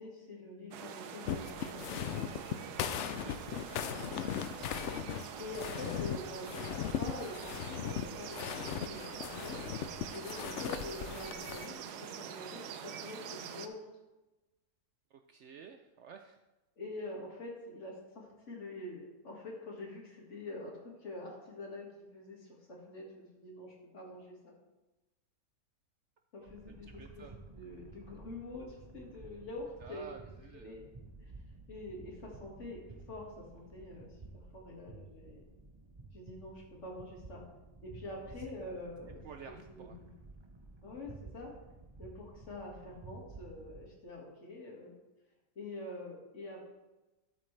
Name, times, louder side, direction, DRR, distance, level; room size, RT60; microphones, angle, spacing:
voice 1, 0.0-2.0 5.4-9.7 10.1-13.9 16.8-24.5 26.3-30.1 30.5-30.8 31.2-31.3 31.7-32.8 33.1-35.4 36.1-37.4 37.8-39.2 39.7-40.1 40.8-41.5 42.0-44.9 45.6-46.6, left 2 dB, 50° left, -2 dB, 2.3 m, -46 dB
sound 1, 0.7-13.7, right 8 dB, 90° right, 1.2 m, -45 dB
sound 2, 1.3-11.7, left 9 dB, 70° left, 0.7 m, -38 dB
voice 2, 15.1-16.4 26.7-27.4 29.8-30.7 38.3-38.5 39.2-40.0, right 7 dB, 70° right, 6 dB, 0.7 m, -51 dB
sound 3, 26.5-43.9, right 3 dB, 30° right, 0.5 m, -53 dB
12.0 x 7.0 x 3.3 m, 1.1 s
omnidirectional pair, 1.6 m